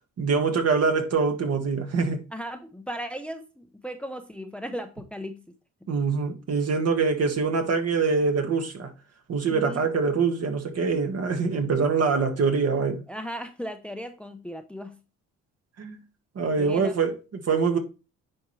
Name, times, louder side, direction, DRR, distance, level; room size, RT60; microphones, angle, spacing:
voice 1, 0.2-2.2 5.9-8.9 9.3-13.0 15.8-16.0 16.4-17.8, right 5 dB, 55° right, 1.8 m, -24 dB
voice 2, 2.3-5.4 9.5-9.8 13.1-15.0 16.6-16.9, equal, 5° left, 0.8 m, -36 dB
9.9 x 4.4 x 3.2 m
cardioid pair, 90°, 30 cm